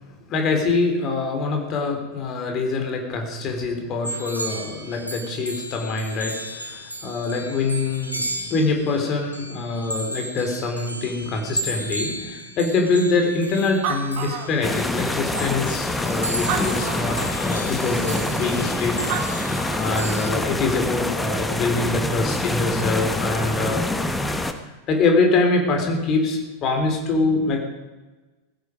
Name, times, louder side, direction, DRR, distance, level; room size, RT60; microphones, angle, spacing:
voice 1, 0.3-19.0 19.2-23.8 24.9-27.6, left 3 dB, 35° left, 3 dB, 3.9 m, -24 dB
sound 1, 4.0-20.3, right 1 dB, 90° right, 2.2 m, -34 dB
Animal, 13.4-13.5 13.7-15.1 15.7-15.8 16.4-17.4 18.8-18.9 19.1-20.0, right 7 dB, 45° right, 2.0 m, -30 dB
sound 2, 14.6-24.5, left 2 dB, 5° left, 1.3 m, -26 dB
17.0 x 16.0 x 5.2 m, 1.1 s
figure-of-eight pair, 90°, 0 cm